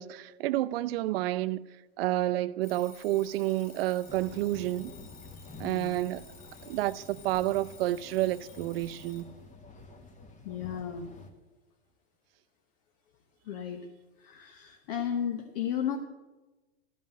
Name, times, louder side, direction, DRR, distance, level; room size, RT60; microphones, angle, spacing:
voice 1, 0.0-1.6 2.0-4.9 5.6-6.2 6.7-9.3, right 15 dB, 60° right, 0.5 m, -30 dB
Alarm, 2.6-9.3, left 5 dB, 40° left, 2.7 m, -53 dB
sound 1, 4.1-11.3, left 3 dB, 25° left, 1.3 m, -49 dB
voice 2, 5.6-6.0 10.4-11.1 13.4-13.9 14.2-16.0, left 9 dB, 60° left, 1.1 m, -34 dB
13.5 x 5.3 x 7.7 m
hypercardioid pair, 100°, 33 cm